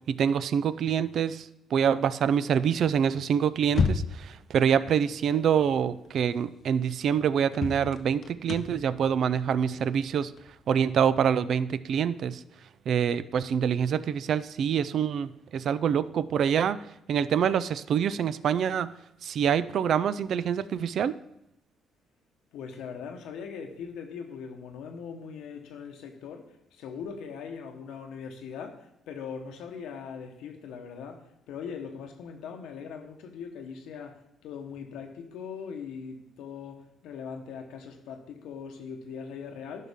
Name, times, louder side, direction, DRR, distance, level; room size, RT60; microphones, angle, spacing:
voice 1, 0.1-1.5 1.7-10.3 10.7-12.4 12.9-16.8 17.1-18.9 19.2-21.1, right 8 dB, 65° right, 0.4 m, -26 dB
sound 1, 3.6-4.4 6.2-6.3 6.7-6.8 7.5-11.1, left 5 dB, 55° left, 0.7 m, -31 dB
voice 2, 22.5-39.9, left 6 dB, 90° left, 1.0 m, -40 dB
11.0 x 5.6 x 3.6 m
cardioid pair, 90°, 0 cm